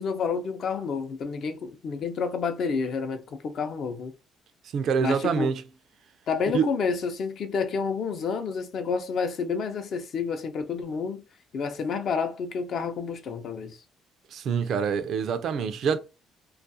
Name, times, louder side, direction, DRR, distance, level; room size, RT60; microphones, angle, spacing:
voice 1, 0.0-4.1 5.0-5.5 6.3-11.2 11.5-13.8, left 5 dB, 60° left, 0.5 m, -29 dB
voice 2, 4.7-5.6 6.5-6.7 14.3-16.0, right 6 dB, 65° right, 0.4 m, -26 dB
2.4 x 2.3 x 2.6 m
cardioid pair, 85°, 0 cm